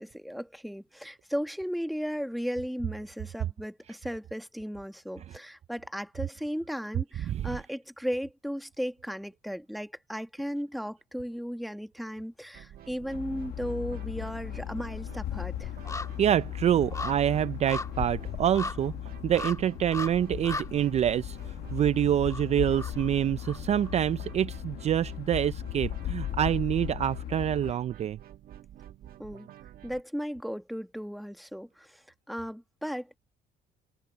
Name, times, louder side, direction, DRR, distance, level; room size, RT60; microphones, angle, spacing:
voice 1, 0.0-15.7 29.2-29.5 29.8-33.2, equal, ahead, 1.4 m, -36 dB
sound 1, 12.5-30.0, right 11 dB, 60° right, 1.4 m, -49 dB
sound 2, 12.9-13.7 14.0-23.9 24.3-24.4, left 3 dB, 20° left, 1.6 m, -41 dB
sound 3, 13.1-27.7, left 12 dB, 70° left, 1.4 m, -37 dB
voice 2, 16.2-18.9 19.2-28.2, right 10 dB, 40° right, 0.4 m, -26 dB
cardioid pair, 110°, 17 cm